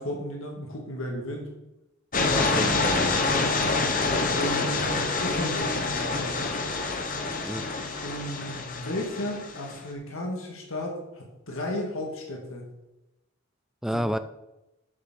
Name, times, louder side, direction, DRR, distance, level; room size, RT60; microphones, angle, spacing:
voice 1, 0.0-1.5 4.0-6.5 8.0-12.7 13.9-14.0, left 1 dB, 65° left, 0 dB, 1.9 m, -34 dB
sound 1, 2.1-9.8, left 3 dB, 40° left, 1.1 m, -27 dB
voice 2, 2.3-3.2 7.4-7.6 13.8-14.2, equal, ahead, 11 dB, 0.4 m, -30 dB
7.3 x 7.0 x 6.2 m, 0.95 s
head